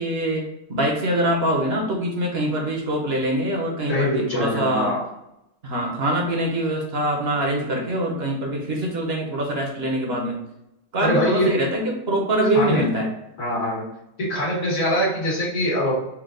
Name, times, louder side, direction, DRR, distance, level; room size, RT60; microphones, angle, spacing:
voice 1, 0.0-4.9 5.6-10.4 10.9-13.1, right 1 dB, 50° right, 0 dB, 1.1 m, -24 dB
voice 2, 3.9-5.0 11.0-11.5 12.5-12.8 13.4-13.9 14.2-15.9, equal, 80° left, -6 dB, 2.0 m, -23 dB
4.4 x 2.3 x 3.7 m, 0.85 s
omnidirectional pair, 1.4 m